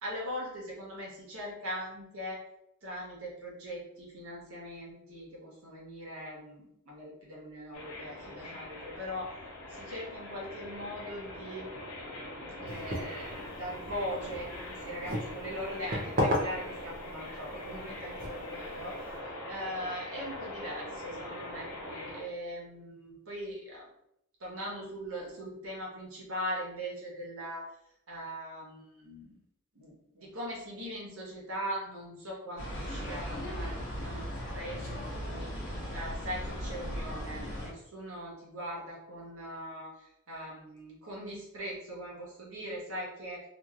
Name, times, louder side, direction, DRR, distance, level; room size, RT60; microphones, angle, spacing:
voice 1, 0.0-2.5 2.8-9.3 9.7-11.7 12.6-19.1 19.5-23.9 24.4-27.7 28.1-29.4 29.7-34.3 34.5-43.4, equal, 75° right, -3 dB, 1.1 m, -40 dB
sound 1, 7.7-22.2, left 1 dB, 85° left, 0.8 m, -43 dB
sound 2, 12.7-19.2, left 1 dB, 40° right, 0.5 m, -36 dB
sound 3, 32.6-37.7, equal, 60° left, 1.0 m, -37 dB
2.9 x 2.6 x 2.4 m, 0.78 s
head